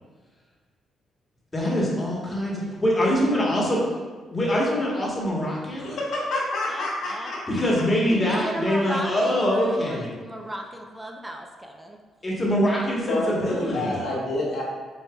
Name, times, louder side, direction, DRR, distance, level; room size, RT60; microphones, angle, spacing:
voice 1, 1.5-3.8 4.3-5.9 7.5-10.1 12.2-14.0, equal, 25° left, -4 dB, 1.3 m, -24 dB
voice 2, 5.8-7.4 7.7-7.8 13.1-14.6, left 2 dB, 70° left, -5 dB, 1.0 m, -28 dB
voice 3, 6.7-7.3 8.1-12.0, right 1 dB, 10° right, 3 dB, 0.5 m, -35 dB
6.5 x 2.8 x 2.3 m, 1.4 s
cardioid pair, 90°, 0 cm